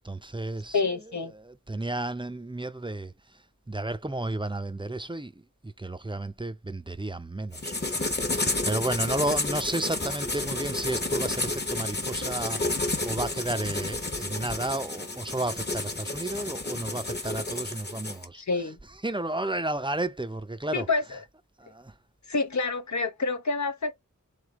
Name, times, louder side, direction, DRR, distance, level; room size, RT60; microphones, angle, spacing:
voice 1, 0.0-1.0 1.3-3.1 3.7-5.3 5.6-8.1 8.6-18.4 19.0-20.9 21.6-21.9, right 2 dB, 15° right, 0.6 m, -32 dB
voice 2, 0.7-1.3 18.3-18.8 20.7-21.2 22.3-23.9, left 3 dB, 60° left, 0.7 m, -28 dB
sound 1, 7.5-18.3, left 2 dB, 35° left, 1.0 m, -31 dB
3.7 x 3.4 x 3.6 m
wide cardioid pair, 50°, 31 cm